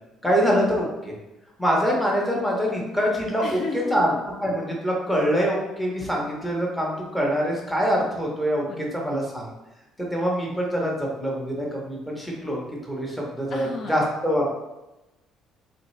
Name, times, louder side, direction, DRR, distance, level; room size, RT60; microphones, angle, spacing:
voice 1, 0.2-1.1 1.6-4.1 4.4-9.5 10.0-12.6 12.9-14.6, equal, 5° left, -3 dB, 0.9 m, -24 dB
voice 2, 3.4-4.2 8.7-8.9 13.5-14.0, left 3 dB, 45° left, 1 dB, 0.4 m, -33 dB
3.8 x 3.1 x 3.2 m, 0.99 s
cardioid pair, 145°, 0 cm